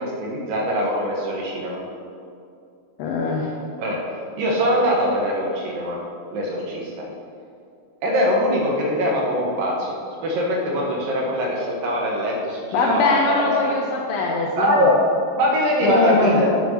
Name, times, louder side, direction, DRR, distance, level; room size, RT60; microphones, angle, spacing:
voice 1, 0.0-1.8 3.8-4.0 4.4-6.0 6.3-7.1 8.0-9.9 10.2-13.7 14.6-15.0 15.3-16.5, equal, 70° right, -2 dB, 2.9 m, -22 dB
voice 2, 3.0-3.5 12.7-14.9 15.8-16.4, left 3 dB, 80° left, 0 dB, 2.3 m, -22 dB
6.7 x 6.5 x 6.3 m, 2.4 s
omnidirectional pair, 4.2 m